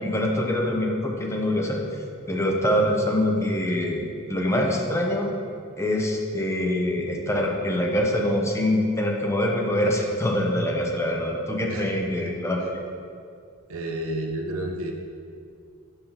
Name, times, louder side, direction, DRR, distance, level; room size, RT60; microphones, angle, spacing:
voice 1, 0.0-1.8 2.3-5.3 5.8-12.8, left 1 dB, 15° left, 0 dB, 0.7 m, -24 dB
voice 2, 11.7-12.3 13.7-14.9, right 1 dB, 65° right, 2 dB, 0.7 m, -31 dB
7.0 x 3.6 x 5.5 m, 2.3 s
head